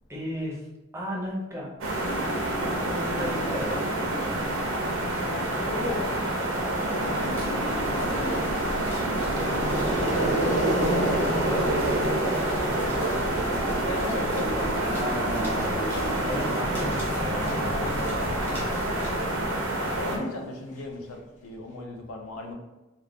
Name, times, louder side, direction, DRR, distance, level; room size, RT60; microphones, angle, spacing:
voice 1, 0.1-0.6 0.9-1.7 2.9-4.5 14.8-15.8 16.3-17.7 18.0-18.4, equal, 15° right, -3 dB, 0.6 m, -34 dB
sound 1, 1.8-20.2, right 1 dB, 75° right, 0.5 m, -27 dB
voice 2, 2.8-3.4 5.1-6.2 7.0-8.5 9.4-12.3 12.6-15.0 17.7-18.5 19.1-22.5, left 2 dB, 85° left, 2 dB, 0.5 m, -38 dB
Growling, 6.8-8.5 9.1-13.2 14.2-20.7, equal, 35° left, 0.5 m, -33 dB
sound 2, 6.9-19.7, equal, 10° left, 0.8 m, -39 dB
2.4 x 2.2 x 3.3 m, 1.1 s
head